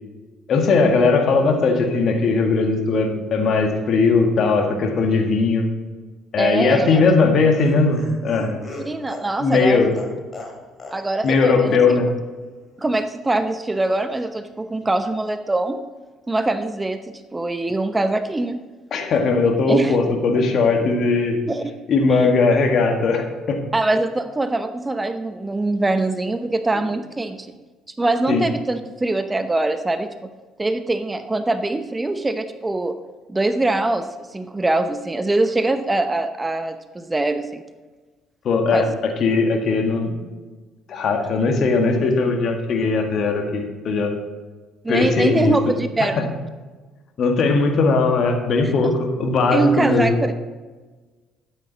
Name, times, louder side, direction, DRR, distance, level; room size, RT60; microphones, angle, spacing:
voice 1, 0.5-5.7 6.3-8.6 9.4-9.9 11.2-12.1 18.9-21.4 21.9-23.6 28.3-28.4 38.4-40.2 40.9-44.1 44.9-45.7 46.0-46.2 47.2-50.2, left 4 dB, 50° left, 3 dB, 1.8 m, -19 dB
voice 2, 6.4-7.0 8.8-9.8 10.9-11.8 12.8-15.8 16.3-17.0 17.3-18.6 19.7-20.0 21.5-21.7 22.1-22.3 23.7-27.5 28.0-30.3 30.6-33.0 33.3-37.6 38.7-38.9 44.8-46.3 48.6-48.9 49.5-50.1, right 2 dB, 20° right, 9 dB, 0.8 m, -23 dB
Laughter, 7.0-11.0 11.2-11.4 11.7-11.8, left 2 dB, 35° left, 2.6 m, -37 dB
12.0 x 8.7 x 4.1 m, 1.3 s
hypercardioid pair, 50°, 0 cm